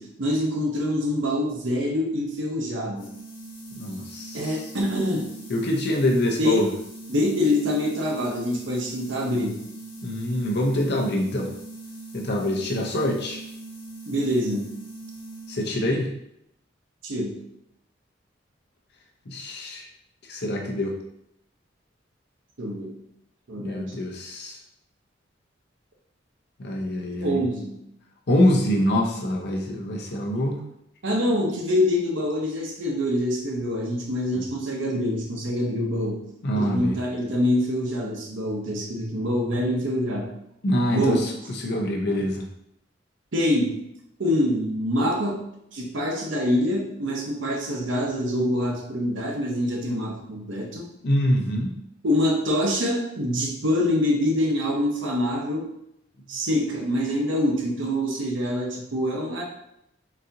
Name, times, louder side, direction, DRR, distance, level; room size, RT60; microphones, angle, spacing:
voice 1, 0.0-3.1 4.3-5.3 6.2-6.7 7.1-9.6 14.1-14.7 17.0-17.4 22.6-22.9 23.5-24.0 27.2-27.8 31.0-36.2 36.5-40.3 40.9-41.2 43.3-43.7 44.2-45.4 45.7-50.8 52.0-55.6 56.3-59.4, left 1 dB, 70° right, -1 dB, 0.8 m, -25 dB
sound 1, 2.9-15.9, right 2 dB, 75° left, 1.1 m, -41 dB
voice 2, 3.7-4.5 5.5-6.7 10.0-11.5 12.1-13.4 15.5-16.1 19.3-19.8 20.3-20.9 23.6-24.6 26.6-27.4 28.3-30.6 36.4-36.9 40.6-41.3 41.6-42.5 51.0-51.7, left 1 dB, 60° left, 1 dB, 0.6 m, -25 dB
4.0 x 2.5 x 2.7 m, 0.78 s
head